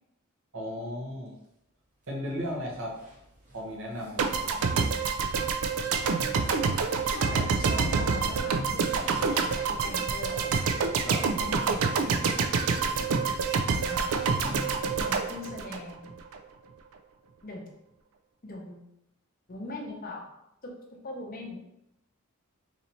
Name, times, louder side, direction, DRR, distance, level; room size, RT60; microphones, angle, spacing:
voice 1, 0.5-1.3 2.1-3.0 3.5-4.5 11.0-11.2, equal, 65° right, -2 dB, 1.0 m, -35 dB
sound 1, 1.3-1.4 1.8-15.2, equal, 35° right, 1.0 m, -49 dB
sound 2, 4.2-16.4, right 5 dB, 85° right, 0.4 m, -27 dB
voice 2, 6.1-6.6 7.1-10.7 11.2-12.4 13.9-14.3 15.0-16.1 17.4-17.7 18.4-18.9 19.5-20.3 20.6-21.7, left 2 dB, 40° left, 1 dB, 0.7 m, -41 dB
3.1 x 2.7 x 4.1 m, 0.82 s
head